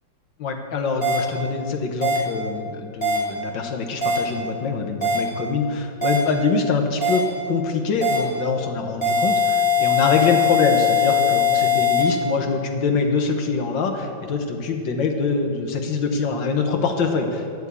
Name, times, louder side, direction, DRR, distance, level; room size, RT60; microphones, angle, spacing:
voice 1, 0.4-17.5, left 4 dB, 85° left, 4 dB, 1.8 m, -24 dB
sound 1, 1.0-1.2 2.0-2.2 3.0-3.2 4.0-4.2 5.0-5.2 6.0-6.2 7.0-7.2 8.0-8.2 9.0-12.0, left 5 dB, 5° left, 3.4 m, -20 dB
11.5 x 7.1 x 8.2 m, 2.4 s
omnidirectional pair, 2.0 m